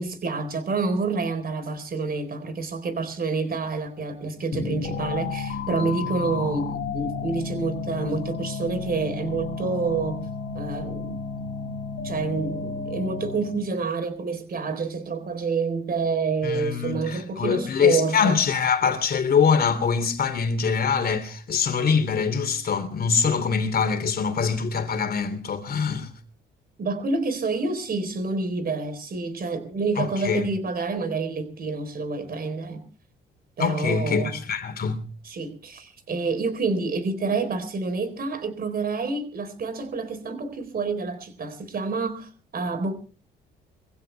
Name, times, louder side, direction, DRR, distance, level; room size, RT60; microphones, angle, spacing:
voice 1, 0.0-10.3 10.5-11.2 12.0-18.4 26.8-32.8 33.6-34.4 35.2-42.9, right 4 dB, 50° right, 4.1 m, -28 dB
sound 1, 4.5-13.8, left 4 dB, 65° left, 3.1 m, -32 dB
voice 2, 16.4-26.1 30.0-30.4 33.6-35.1, left 6 dB, 50° left, 3.1 m, -24 dB
24.0 x 16.0 x 3.4 m
cardioid pair, 90°, 20 cm